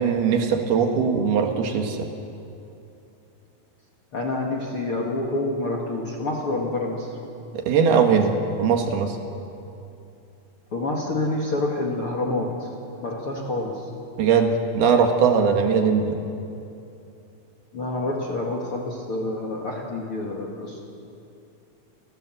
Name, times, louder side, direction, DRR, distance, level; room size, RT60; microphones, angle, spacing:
voice 1, 0.0-2.0 7.5-9.2 14.2-16.2, right 6 dB, 70° right, 4 dB, 3.4 m, -20 dB
voice 2, 4.1-7.1 10.7-12.7 13.0-13.9 17.7-20.8, left 2 dB, 45° left, 0 dB, 2.1 m, -27 dB
29.5 x 17.0 x 7.8 m, 2.7 s
omnidirectional pair, 4.9 m